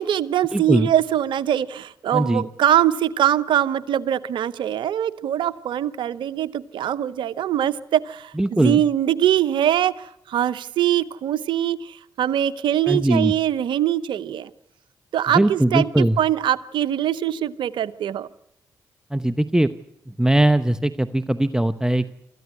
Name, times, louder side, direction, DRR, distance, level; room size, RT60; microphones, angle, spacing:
voice 1, 0.0-14.5 15.1-18.3, right 11 dB, 75° right, 17 dB, 0.8 m, -22 dB
voice 2, 0.5-0.9 2.1-2.4 8.4-8.8 12.9-13.3 15.3-16.2 19.1-19.7 20.2-22.1, right 1 dB, 10° right, 12 dB, 0.9 m, -20 dB
25.5 x 14.0 x 9.6 m, 0.82 s
hypercardioid pair, 40°, 8 cm